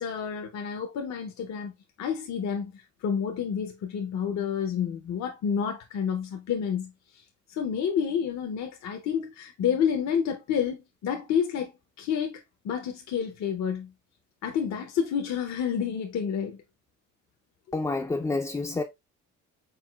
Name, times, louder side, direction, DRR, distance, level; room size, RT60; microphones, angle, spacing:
voice 1, 0.0-1.7 2.0-6.9 7.5-11.7 12.0-13.9 14.4-16.6, left 7 dB, 65° left, 0.7 m, -29 dB
voice 2, 17.7-18.8, left 3 dB, 10° left, 0.4 m, -28 dB
4.8 x 3.7 x 2.3 m
cardioid pair, 90°, 30 cm